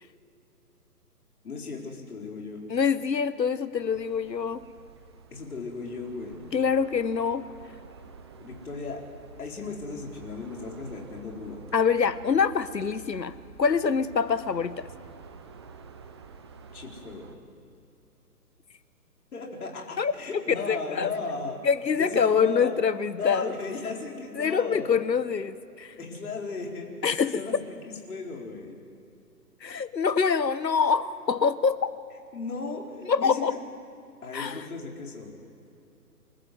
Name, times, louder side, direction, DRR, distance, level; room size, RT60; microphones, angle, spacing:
voice 1, 1.4-2.6 5.3-6.5 8.4-9.0 9.4-11.7 16.7-17.3 19.3-21.6 22.0-22.8 23.2-24.9 26.0-26.9 27.3-27.6 28.1-28.8 32.3-33.6 34.2-35.3, left 4 dB, 60° left, 0 dB, 4.7 m, -36 dB
voice 2, 2.7-4.7 6.5-7.5 11.7-14.9 20.0-20.4 20.7-21.1 21.6-23.5 24.3-25.9 27.0-27.6 29.6-31.9 33.0-33.6 34.3-34.6, left 6 dB, 85° left, 15 dB, 1.2 m, -25 dB
sound 1, 3.7-17.4, right 5 dB, 15° right, 0.7 m, -49 dB
26.5 x 14.0 x 8.1 m, 2.7 s
figure-of-eight pair, 145°, 49 cm